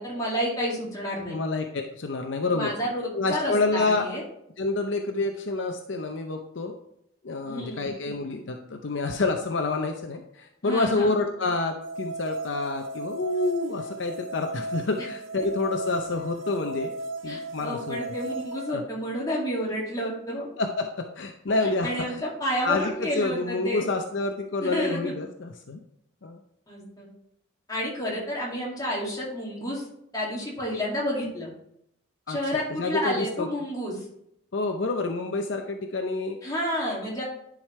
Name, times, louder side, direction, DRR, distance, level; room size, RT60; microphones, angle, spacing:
voice 1, 0.0-1.4 2.5-4.2 7.4-7.9 10.6-11.2 15.0-15.1 17.3-20.5 21.6-23.9 24.6-25.1 26.7-27.1 27.7-29.9 30.1-31.5 32.3-34.1 36.4-37.2, equal, 20° left, -4 dB, 2.3 m, -30 dB
voice 2, 1.3-2.7 3.1-4.1 4.6-6.7 7.2-16.9 17.2-18.0 18.7-18.8 20.6-22.2 22.6-25.8 26.2-26.4 32.3-33.5 34.5-36.4, left 3 dB, 65° left, 4 dB, 0.6 m, -28 dB
sound 1, 11.8-18.7, right 2 dB, 70° right, 0.6 m, -36 dB
10.5 x 5.0 x 3.2 m, 0.76 s
head